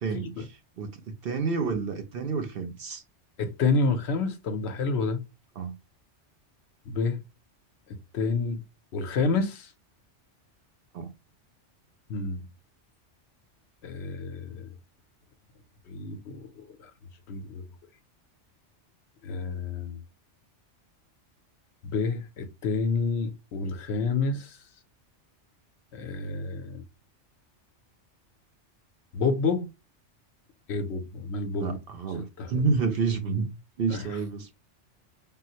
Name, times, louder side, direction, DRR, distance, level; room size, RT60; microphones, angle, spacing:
voice 1, 0.0-3.0 5.6-5.7 10.9-11.1 31.6-33.5 33.8-34.5, right 4 dB, 60° right, 0.7 m, -29 dB
voice 2, 3.4-5.2 6.9-7.2 8.1-8.6 8.9-9.7 12.1-12.5 13.8-14.7 15.9-16.9 17.3-17.6 19.2-20.0 21.8-24.6 25.9-26.8 29.1-29.7 30.7-31.8 32.4-32.5 33.9-34.0, left 4 dB, 70° left, 0.9 m, -29 dB
3.7 x 2.1 x 2.7 m
omnidirectional pair, 1.2 m